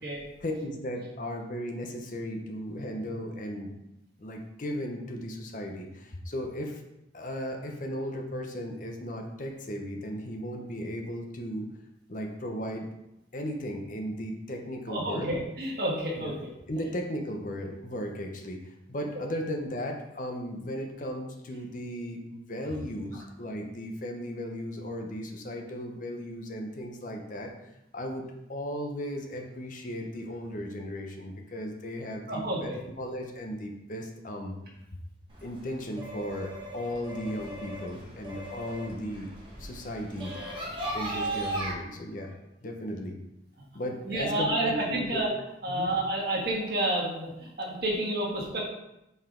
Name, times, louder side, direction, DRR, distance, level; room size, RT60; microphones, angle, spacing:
voice 1, 0.4-3.7 4.2-6.8 7.1-11.7 12.1-12.9 13.3-15.3 16.2-16.3 16.7-27.5 27.9-34.6 35.4-39.3 39.6-40.7 40.9-43.2 43.7-45.2 45.7-45.9, equal, 45° left, 3 dB, 0.7 m, -36 dB
voice 2, 14.9-16.4 32.3-32.8 44.0-45.3 45.6-48.6, right 1 dB, 55° right, -2 dB, 1.5 m, -29 dB
sound 1, 35.3-41.7, right 1 dB, 25° right, 1.4 m, -37 dB
5.5 x 4.7 x 3.8 m, 0.89 s
head